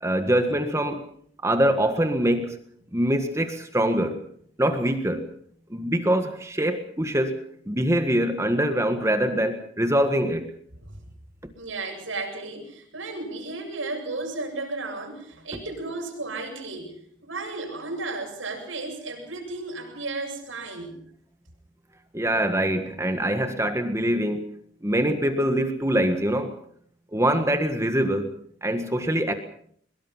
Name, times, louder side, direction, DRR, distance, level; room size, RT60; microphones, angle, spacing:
voice 1, 0.0-1.1 1.4-2.6 2.9-4.2 4.6-5.3 5.7-10.5 22.1-24.5 24.8-26.6 27.1-28.3 28.6-29.3, right 1 dB, 15° right, 7 dB, 1.6 m, -24 dB
voice 2, 11.6-17.0 17.2-21.0, right 3 dB, 90° right, 2 dB, 8.0 m, -34 dB
23.0 x 22.0 x 5.8 m, 0.62 s
head